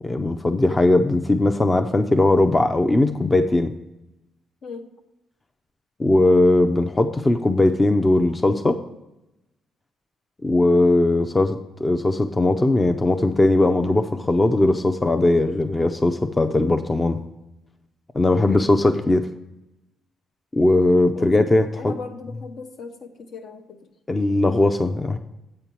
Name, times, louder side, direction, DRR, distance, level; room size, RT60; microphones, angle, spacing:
voice 1, 0.0-3.7 6.0-8.8 10.4-17.2 18.1-19.3 20.5-21.9 24.1-25.2, left 2 dB, 20° left, 6 dB, 0.5 m, -19 dB
voice 2, 21.2-23.8, left 4 dB, 65° left, 4 dB, 1.0 m, -38 dB
8.0 x 4.5 x 7.0 m, 0.92 s
cardioid pair, 90°, 0 cm